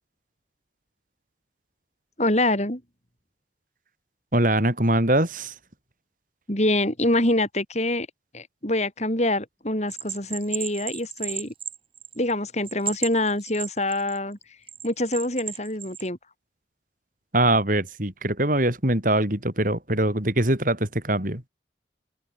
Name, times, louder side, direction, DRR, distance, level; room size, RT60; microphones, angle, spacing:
voice 1, 2.2-2.8 6.5-8.1 8.3-11.5 12.2-14.4 14.8-16.2, left 1 dB, 40° left, 7.8 m, -25 dB
voice 2, 4.3-5.5 17.3-21.4, right 1 dB, 50° right, 5.2 m, -22 dB
Bell, 9.9-12.3 12.6-14.2 14.7-16.1, right 9 dB, 30° right, 6.0 m, -33 dB
head